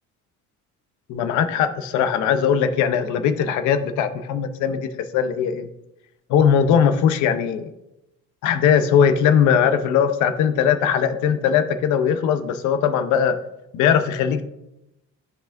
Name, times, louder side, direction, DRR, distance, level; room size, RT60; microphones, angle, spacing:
voice 1, 1.1-5.7 6.3-7.7 8.4-13.4 13.7-14.4, left 8 dB, 75° left, 10 dB, 0.7 m, -20 dB
13.0 x 4.7 x 2.5 m, 0.91 s
cardioid pair, 170°, 30 cm